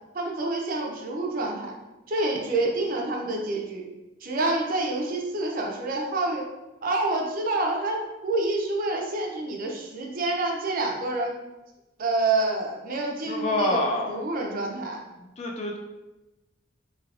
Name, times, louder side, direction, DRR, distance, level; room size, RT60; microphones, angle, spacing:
voice 1, 0.1-1.7 2.1-3.9 4.2-6.4 6.8-11.4 12.0-13.8 14.1-15.0, right 2 dB, 45° right, 0 dB, 0.5 m, -27 dB
voice 2, 13.3-14.2 15.4-15.8, left 1 dB, 35° left, 1 dB, 0.4 m, -26 dB
3.3 x 2.7 x 2.4 m, 1.0 s
head